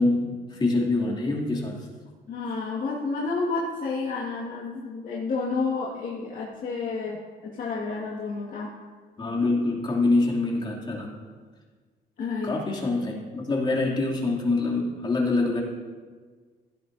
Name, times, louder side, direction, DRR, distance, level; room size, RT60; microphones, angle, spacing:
voice 1, 0.0-1.8 9.2-11.1 12.4-15.6, left 2 dB, 25° left, -2 dB, 2.8 m, -25 dB
voice 2, 2.3-7.2 7.4-8.7 12.2-12.6, left 4 dB, 55° left, -4 dB, 1.9 m, -30 dB
16.5 x 11.0 x 2.7 m, 1.5 s
cardioid pair, 110°, 17 cm